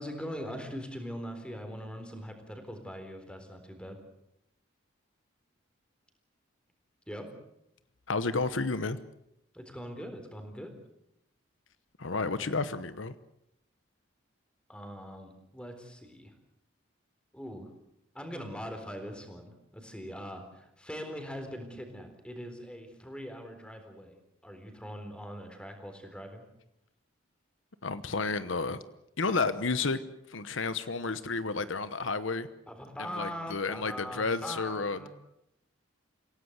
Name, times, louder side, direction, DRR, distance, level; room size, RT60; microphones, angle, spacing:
voice 1, 0.0-4.0 7.1-7.3 9.5-10.7 14.7-16.3 17.3-17.7 18.1-24.1 24.4-26.4 32.7-35.1, equal, 5° left, 6 dB, 3.9 m, -41 dB
voice 2, 8.1-9.0 12.0-13.1 27.8-28.8 29.2-30.0 30.3-32.5 33.0-35.1, left 4 dB, 75° left, 13 dB, 1.0 m, -31 dB
27.5 x 17.0 x 8.0 m, 0.82 s
head